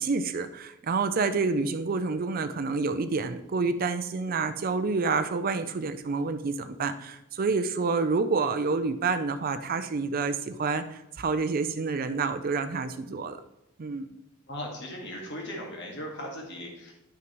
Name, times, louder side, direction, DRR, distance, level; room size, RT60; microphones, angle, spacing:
voice 1, 0.0-13.4 13.8-14.1, right 4 dB, 45° right, 10 dB, 0.4 m, -28 dB
voice 2, 14.5-16.9, equal, 60° left, 0 dB, 1.7 m, -38 dB
11.0 x 5.9 x 3.0 m, 0.90 s
head